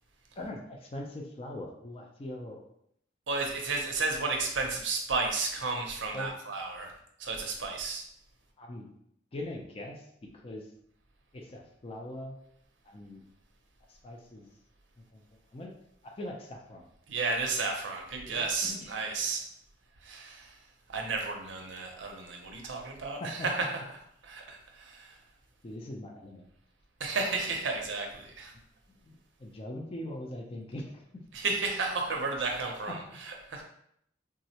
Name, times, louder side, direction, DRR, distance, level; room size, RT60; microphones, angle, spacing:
voice 1, 0.4-2.7 6.1-6.4 8.6-8.9 9.3-10.0 10.3-10.7 11.3-12.4 12.8-13.2 13.9-14.5 15.0-15.3 15.5-15.7 16.0-16.9 18.2-18.9 19.2-19.4 21.9-22.1 22.6-22.7 23.2-23.7 25.6-26.5 29.0-31.0 32.9-33.2 33.5-33.6, left 1 dB, 30° left, 1 dB, 0.4 m, -41 dB
voice 2, 3.3-6.9 7.2-8.0 17.1-19.4 20.0-20.5 20.9-24.0 24.2-25.1 27.0-28.5 31.3-33.6, right 3 dB, 70° right, 2 dB, 0.6 m, -33 dB
3.5 x 2.0 x 2.8 m, 0.72 s
head